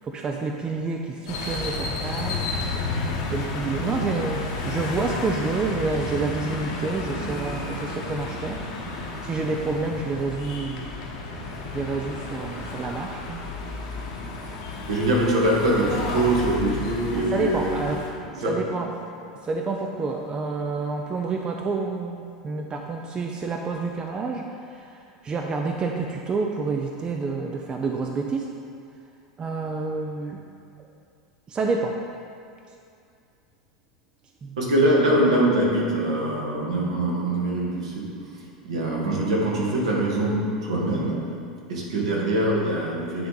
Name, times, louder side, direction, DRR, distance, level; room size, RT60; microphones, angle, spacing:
voice 1, 0.0-8.6 8.9-11.1 11.7-13.5 13.9-14.0 17.2-18.1 18.4-18.9 19.2-28.6 29.4-30.4 31.5-32.0 34.4-34.6, right 4 dB, 25° right, 2 dB, 0.4 m, -29 dB
sound 1, 1.3-18.1, left 3 dB, 60° left, 1.1 m, -32 dB
voice 2, 14.9-17.8 18.4-18.5 34.6-38.1 38.6-41.1 41.7-43.3, right 1 dB, 70° right, -3 dB, 1.5 m, -23 dB
9.8 x 3.4 x 4.0 m, 2.5 s
figure-of-eight pair, 85°, 3 cm